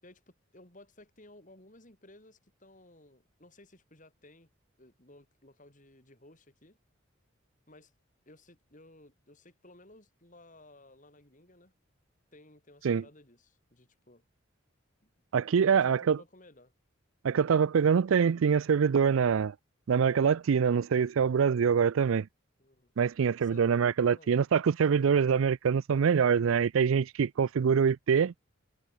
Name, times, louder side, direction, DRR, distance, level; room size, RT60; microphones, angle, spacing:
voice 1, 0.0-4.5 4.8-6.8 7.7-7.9 8.3-11.7 12.3-14.2 15.0-15.1 15.6-16.7 22.6-22.9 23.4-23.7 24.1-24.3, left 1 dB, 40° left, 4.4 m, -57 dB
voice 2, 15.3-16.2 17.2-19.5 19.9-22.3 23.0-28.3, right 6 dB, 80° right, 0.4 m, -25 dB
head